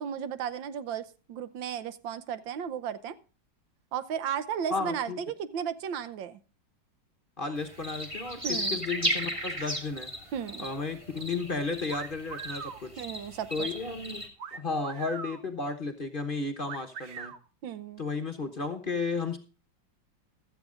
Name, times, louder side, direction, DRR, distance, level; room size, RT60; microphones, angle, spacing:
voice 1, 0.0-3.2 3.9-6.4 8.4-8.8 10.3-10.6 13.0-13.7 17.6-18.0, right 8 dB, 85° right, 14 dB, 1.6 m, -34 dB
voice 2, 4.7-5.2 7.4-10.1 10.6-13.0 13.5-14.2 14.5-17.3 18.0-19.4, left 4 dB, 35° left, 6 dB, 1.0 m, -33 dB
sound 1, 7.6-14.3, equal, 15° right, 2.2 m, -35 dB
sound 2, 11.9-12.8 14.4-15.4 16.7-17.4, right 6 dB, 50° right, 1.3 m, -40 dB
16.0 x 12.5 x 2.5 m, 0.36 s
omnidirectional pair, 2.0 m